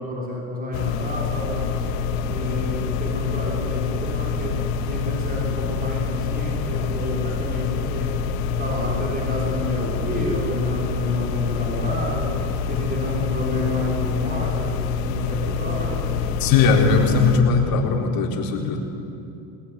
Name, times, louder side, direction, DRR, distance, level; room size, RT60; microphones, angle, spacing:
voice 1, 0.0-1.7 2.3-4.6 4.9-8.1 8.5-12.3 12.7-16.1, left 1 dB, 20° right, -3 dB, 6.3 m, -29 dB
sound 1, 0.7-17.4, left 5 dB, 85° left, 1.6 m, -26 dB
voice 2, 16.4-18.8, left 5 dB, 60° left, 1 dB, 4.1 m, -19 dB
20.5 x 20.0 x 9.8 m, 2.8 s
supercardioid pair, 95°, 39 cm